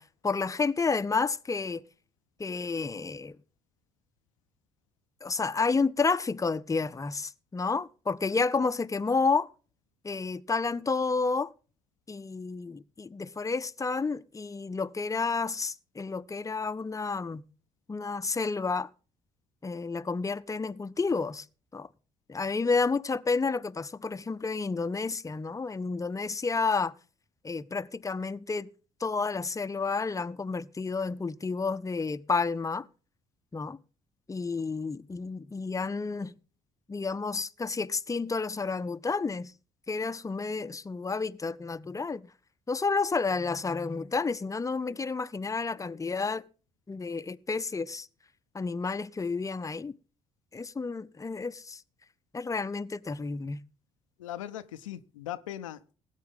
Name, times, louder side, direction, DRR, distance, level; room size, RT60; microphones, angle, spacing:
voice 1, 0.0-1.8 2.4-3.4 5.2-9.5 10.0-11.5 12.1-17.4 17.9-18.9 19.6-21.5 21.7-21.9 22.3-26.9 27.4-28.7 29.0-32.9 33.5-33.8 34.3-36.3 36.9-39.5 39.9-42.3 42.7-46.4 46.9-48.1 48.5-49.9 50.5-51.8 52.3-53.6, left 4 dB, 20° left, 0.6 m, -30 dB
voice 2, 54.2-55.9, left 12 dB, 90° left, 0.4 m, -39 dB
19.0 x 8.2 x 3.7 m
hypercardioid pair, 45°, 16 cm